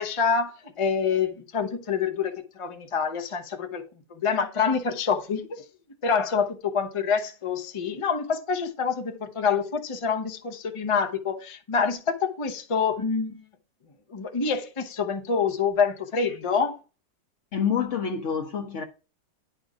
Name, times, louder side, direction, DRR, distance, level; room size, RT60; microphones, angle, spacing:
voice 1, 0.0-3.8 4.1-5.6 6.0-13.4 14.1-16.8, left 6 dB, 35° left, 0.5 m, -26 dB
voice 2, 17.5-18.8, left 7 dB, 55° left, 0.9 m, -27 dB
10.5 x 3.5 x 4.9 m
omnidirectional pair, 1.9 m